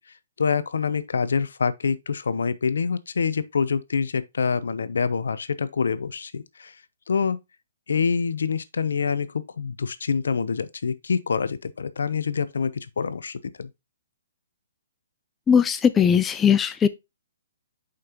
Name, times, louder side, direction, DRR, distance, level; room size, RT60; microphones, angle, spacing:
voice 1, 0.4-6.7 7.1-7.4 7.9-13.7, left 5 dB, 80° left, 0.7 m, -26 dB
voice 2, 15.5-16.9, left 7 dB, 15° left, 0.4 m, -19 dB
6.5 x 5.2 x 2.9 m
hypercardioid pair, 145°, 0 cm